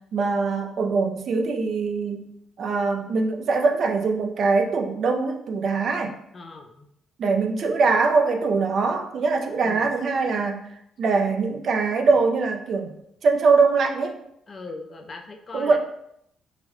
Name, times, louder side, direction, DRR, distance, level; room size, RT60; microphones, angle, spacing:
voice 1, 0.1-2.3 2.6-6.1 7.2-10.7 11.0-12.9 13.2-14.2 15.5-15.8, right 4 dB, 50° right, 4 dB, 0.3 m, -22 dB
voice 2, 6.3-6.9 9.6-9.9 14.5-15.8, left 3 dB, 30° left, 4 dB, 0.3 m, -39 dB
3.9 x 2.1 x 2.9 m, 0.76 s
cardioid pair, 150°, 0 cm